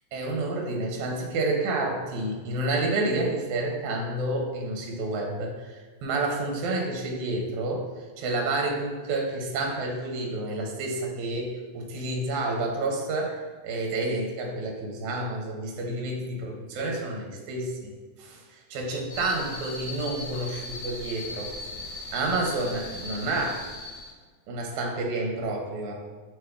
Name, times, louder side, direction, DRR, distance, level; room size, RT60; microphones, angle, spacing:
voice 1, 0.1-17.9 18.2-21.5 22.1-23.7 24.5-25.9, right 2 dB, 75° right, 1 dB, 2.0 m, -29 dB
sound 1, 19.1-24.1, left 2 dB, 75° left, 2.5 m, -38 dB
6.0 x 3.3 x 2.2 m, 1.4 s
omnidirectional pair, 3.6 m